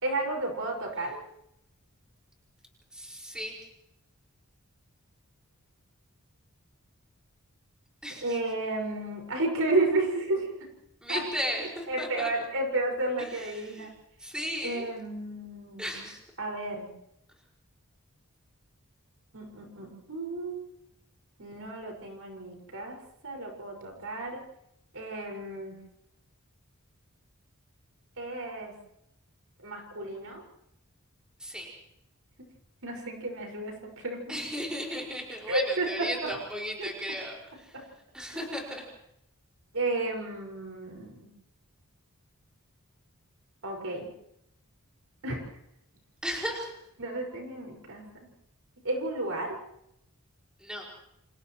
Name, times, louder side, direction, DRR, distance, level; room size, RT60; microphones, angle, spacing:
voice 1, 0.0-1.2 8.2-10.5 11.1-11.2 11.6-13.9 14.6-16.0 16.4-16.9 19.3-20.7 21.4-23.0 23.2-24.4 24.9-25.7 28.2-28.7 29.6-30.4 32.8-34.4 35.5-35.9 36.8-36.9 37.7-37.8 38.3-38.4 39.7-41.3 43.6-44.1 45.2-45.4 47.0-48.0 48.8-49.6, right 2 dB, 70° right, 1 dB, 5.8 m, -32 dB
voice 2, 2.9-3.6 8.0-8.4 11.0-12.3 13.2-13.9 14.2-14.9 15.8-16.2 31.4-31.7 34.3-37.8 38.1-38.9 46.2-46.7 50.6-50.9, equal, 5° right, -2 dB, 5.4 m, -35 dB
29.5 x 28.0 x 3.2 m, 0.79 s
head